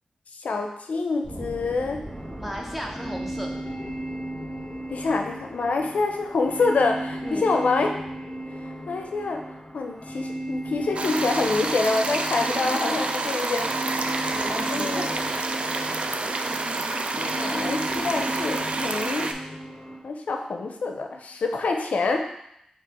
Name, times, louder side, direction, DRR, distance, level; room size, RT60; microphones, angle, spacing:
voice 1, 0.4-2.0 4.9-7.9 8.9-9.4 9.7-13.9 14.2-14.3 14.7-15.1 16.2-16.4 16.9-19.3 20.0-22.3, left 3 dB, 80° left, 3 dB, 0.5 m, -26 dB
sound 1, 1.2-12.0, right 1 dB, 40° right, 1.6 m, -44 dB
sound 2, 2.1-20.0, right 1 dB, 10° left, 1.1 m, -36 dB
voice 2, 2.4-3.6 7.2-7.5 14.3-15.2, equal, 5° right, 0 dB, 0.9 m, -35 dB
sound 3, 11.0-19.3, right 3 dB, 55° right, 0.4 m, -28 dB
4.4 x 2.8 x 4.2 m, 0.76 s
cardioid pair, 60°, 2 cm